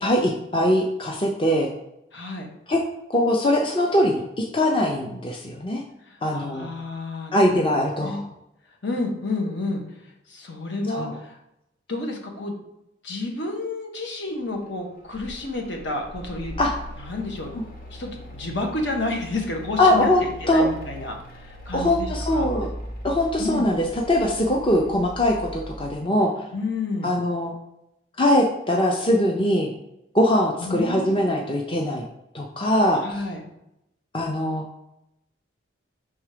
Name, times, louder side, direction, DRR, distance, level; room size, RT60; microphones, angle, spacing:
voice 1, 0.0-1.7 2.7-2.8 3.1-4.2 4.5-5.8 6.2-6.7 7.3-8.2 10.9-11.1 16.6-16.7 17.5-17.6 19.8-20.6 21.7-22.7 23.0-26.3 27.0-27.5 28.2-29.7 30.1-32.0 32.3-33.0 34.1-34.7, left 1 dB, 25° left, 0 dB, 0.6 m, -21 dB
voice 2, 2.1-2.5 6.1-7.6 7.9-8.2 8.8-9.8 10.3-11.4 11.9-12.5 13.0-16.5 17.0-17.5 17.9-22.5 23.4-23.7 26.5-27.1 30.6-31.8 33.0-33.4, left 2 dB, 70° left, 1 dB, 1.4 m, -30 dB
Mechanical fan, 14.6-25.9, equal, 45° left, 1.1 m, -38 dB
6.1 x 3.6 x 5.0 m, 0.85 s
head